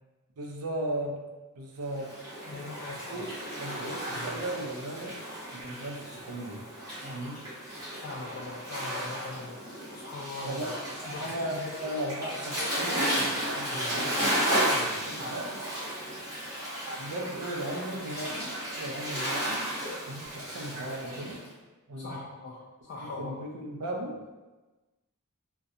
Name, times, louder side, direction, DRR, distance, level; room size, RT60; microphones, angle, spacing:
voice 1, 0.4-1.3 1.6-2.2 2.8-5.2 5.5-6.6 7.0-7.4 10.5-15.6 17.0-19.7 20.1-21.4 21.9-22.3 23.0-24.2, right 1 dB, 75° right, 0 dB, 0.5 m, -37 dB
Waves surf, 1.9-21.4, right 1 dB, 15° right, 1.0 m, -34 dB
voice 2, 2.5-3.3 3.7-4.4 8.0-10.7 11.1-11.8 13.7-14.0 22.0-23.4, left 2 dB, 50° left, -3 dB, 0.4 m, -41 dB
2.6 x 2.2 x 2.4 m, 1.2 s
head